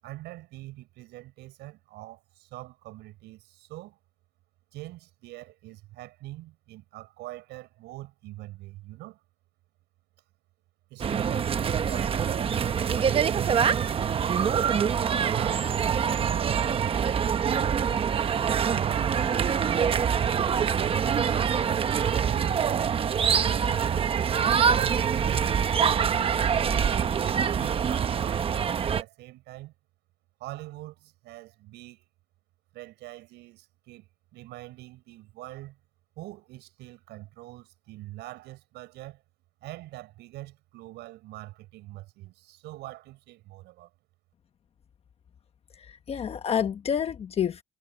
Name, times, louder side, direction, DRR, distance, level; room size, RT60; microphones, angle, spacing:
voice 1, 0.0-4.0 4.7-9.2 10.9-13.7 15.3-20.1 20.5-24.1 24.6-27.1 27.6-28.5 28.7-29.7 30.4-32.0 32.7-35.8 36.2-39.2 39.6-43.9, right 18 dB, 75° right, 7.1 m, -43 dB
sound 1, 11.0-29.0, right 7 dB, 30° right, 1.0 m, -25 dB
voice 2, 45.7-47.6, left 8 dB, 35° left, 1.2 m, -29 dB
cardioid pair, 130°, 18 cm